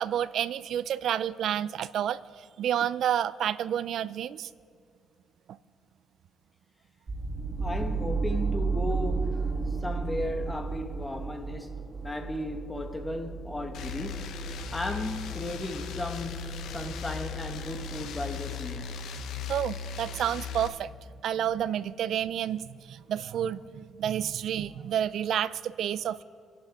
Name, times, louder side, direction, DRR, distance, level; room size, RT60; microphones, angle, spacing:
voice 1, 0.0-4.5 19.5-20.9 21.2-26.2, right 10 dB, 70° right, 0.5 m, -30 dB
sound 1, 7.1-19.0, right 4 dB, 35° right, 1.5 m, -34 dB
voice 2, 7.6-19.1, left 1 dB, 20° left, 1.6 m, -36 dB
sound 2, 13.7-20.7, left 6 dB, 85° left, 1.0 m, -37 dB
27.0 x 10.0 x 3.7 m
cardioid pair, 90°, 0 cm